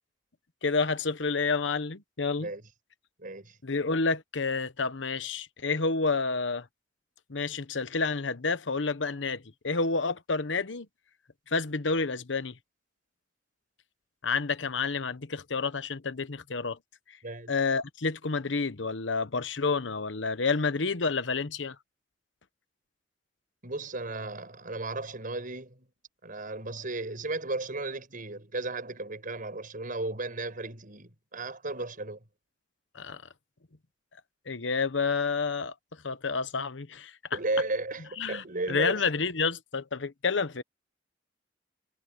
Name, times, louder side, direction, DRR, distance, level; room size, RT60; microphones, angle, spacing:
voice 1, 0.6-2.5 3.6-6.7 7.3-10.9 11.5-12.6 14.2-16.8 17.1-17.2 17.5-21.8 32.9-33.2 34.5-35.7 36.0-37.4 38.2-40.6, left 4 dB, 85° left, 1.1 m, -29 dB
voice 2, 3.2-3.6 17.2-17.5 23.6-25.9 26.2-32.2 37.3-39.1, right 2 dB, 50° right, 6.2 m, -34 dB
head